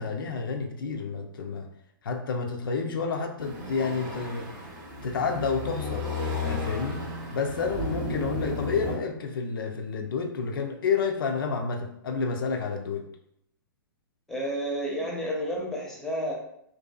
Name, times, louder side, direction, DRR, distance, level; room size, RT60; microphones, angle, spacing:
voice 1, 0.0-1.7 2.0-4.5 5.0-6.2 6.4-7.0 7.3-13.0, left 5 dB, 75° left, 4 dB, 0.4 m, -30 dB
sound 1, 3.4-9.0, left 2 dB, 35° right, 0.7 m, -33 dB
voice 2, 14.3-16.3, equal, 5° left, -3 dB, 0.6 m, -30 dB
2.6 x 2.3 x 2.3 m, 0.73 s
hypercardioid pair, 120°, 12 cm